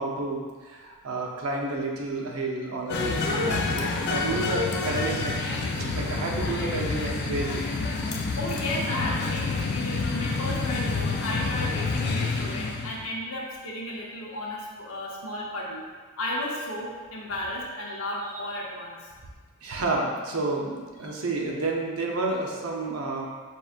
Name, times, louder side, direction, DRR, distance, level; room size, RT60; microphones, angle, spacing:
voice 1, 0.0-5.3 5.7-7.7 19.6-23.3, right 2 dB, 75° right, -1 dB, 0.7 m, -30 dB
sound 1, 2.9-13.1, left 3 dB, 50° left, 0.4 m, -28 dB
voice 2, 8.4-15.8 16.2-19.1, left 1 dB, 65° left, -3 dB, 0.8 m, -33 dB
5.2 x 3.0 x 2.4 m, 1.5 s
head